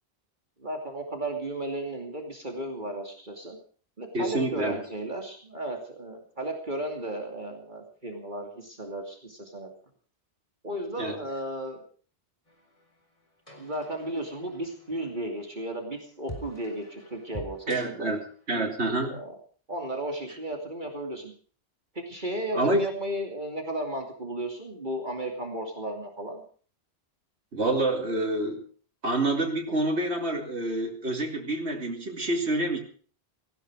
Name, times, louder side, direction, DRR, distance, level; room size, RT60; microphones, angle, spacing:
voice 1, 0.6-3.6 4.0-9.7 10.6-11.8 13.6-18.1 19.0-19.3 19.7-21.3 21.9-26.4, right 1 dB, 45° right, 3 dB, 2.9 m, -34 dB
voice 2, 4.1-4.8 11.0-11.2 17.7-18.2 18.5-19.2 22.5-22.9 27.5-28.6 29.0-32.8, right 2 dB, 85° right, 3 dB, 3.2 m, -27 dB
sound 1, 12.5-19.0, equal, 30° left, 4.3 m, -47 dB
18.0 x 16.0 x 4.8 m, 0.43 s
omnidirectional pair, 1.1 m